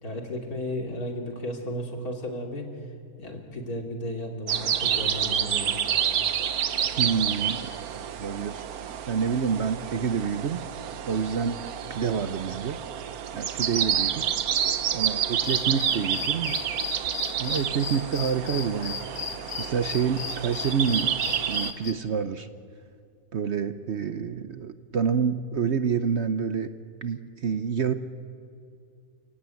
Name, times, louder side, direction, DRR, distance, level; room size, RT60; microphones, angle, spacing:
voice 1, 0.0-2.7 3.2-6.0, left 1 dB, 70° left, 1 dB, 3.4 m, -34 dB
sound 1, 4.5-21.7, right 9 dB, 70° right, 1.3 m, -29 dB
voice 2, 7.0-7.7 8.2-8.6 9.1-10.6 11.1-11.6 11.9-12.8 13.3-14.2 14.9-16.6 17.4-19.0 19.6-21.1 21.5-22.5 23.3-26.7 27.0-27.9, right 6 dB, 55° right, 10 dB, 0.9 m, -27 dB
sound 2, 13.7-15.9, right 1 dB, 20° right, 1.4 m, -52 dB
sound 3, 15.3-21.9, left 7 dB, 50° left, 1.6 m, -36 dB
29.0 x 16.5 x 9.4 m, 2.3 s
omnidirectional pair, 1.6 m